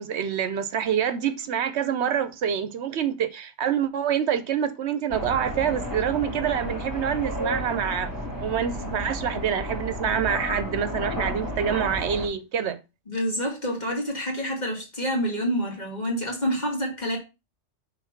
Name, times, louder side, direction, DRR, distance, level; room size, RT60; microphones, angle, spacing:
voice 1, 0.0-8.1 8.4-12.8, right 8 dB, 70° right, 0.9 m, -26 dB
sound 1, 5.1-12.3, equal, 15° right, 1.9 m, -32 dB
voice 2, 13.1-17.2, equal, 35° left, 2.4 m, -27 dB
6.1 x 3.8 x 5.7 m
omnidirectional pair, 1.2 m